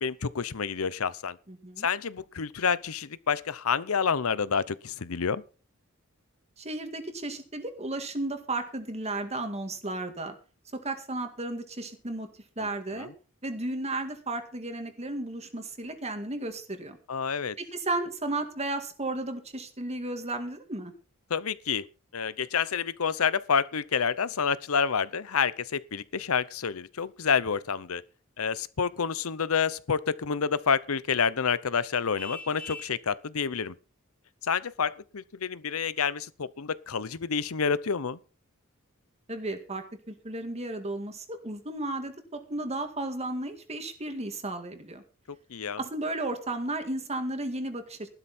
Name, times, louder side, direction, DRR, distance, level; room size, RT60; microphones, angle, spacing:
voice 1, 0.0-1.4 1.8-5.4 13.0-13.1 17.1-17.6 21.3-21.9 22.1-28.0 28.4-33.7 34.4-38.2 45.5-45.8, left 6 dB, 85° left, 0.7 m, -28 dB
voice 2, 1.5-1.9 6.6-10.3 10.8-12.3 12.6-13.1 13.4-17.0 17.6-20.9 39.3-45.0 45.8-48.1, right 2 dB, 30° right, 2.0 m, -34 dB
Vehicle horn car horn honking, 32.2-33.0, left 3 dB, 5° left, 2.9 m, -41 dB
13.5 x 12.5 x 4.3 m
head